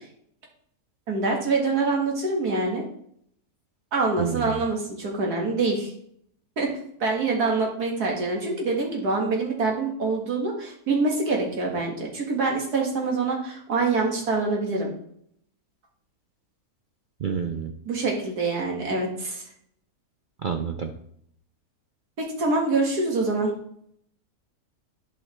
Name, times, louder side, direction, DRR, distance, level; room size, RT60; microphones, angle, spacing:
voice 1, 1.1-2.8 3.9-5.9 6.6-6.7 7.0-14.9 17.9-19.4 22.2-23.5, right 3 dB, 85° right, 0 dB, 2.4 m, -25 dB
voice 2, 4.2-4.6 17.2-17.7 20.4-20.9, right 7 dB, 65° right, 5 dB, 0.4 m, -29 dB
11.0 x 5.5 x 3.3 m, 0.67 s
omnidirectional pair, 1.6 m